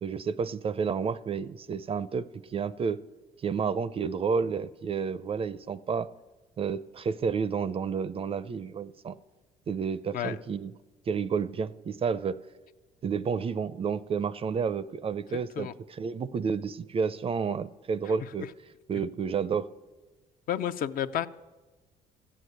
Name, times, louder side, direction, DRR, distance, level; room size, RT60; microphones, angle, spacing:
voice 1, 0.0-3.0 3.4-6.1 6.6-9.2 9.7-10.7 11.1-12.4 13.0-18.5 18.9-19.7, right 6 dB, 35° right, 17 dB, 0.5 m, -30 dB
voice 2, 15.3-15.7 20.5-21.3, left 10 dB, 55° left, 12 dB, 0.6 m, -31 dB
13.5 x 8.4 x 7.9 m, 1.2 s
cardioid pair, 110°, 17 cm